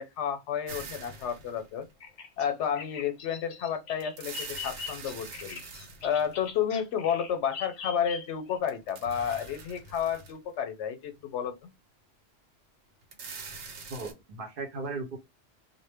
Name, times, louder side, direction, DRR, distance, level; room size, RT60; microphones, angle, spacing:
voice 1, 0.0-1.9 2.4-5.6 6.0-11.7, left 8 dB, 90° left, 0.9 m, -31 dB
sound 1, 0.7-1.9 4.0-6.6 8.7-10.5 11.1-11.2 13.0-14.1, right 4 dB, 85° right, 0.9 m, -44 dB
Bird vocalization bird call bird song, 2.0-8.6, left 5 dB, 55° left, 0.5 m, -42 dB
voice 2, 13.9-15.2, right 3 dB, 55° right, 0.8 m, -36 dB
2.1 x 2.0 x 3.3 m
omnidirectional pair, 1.1 m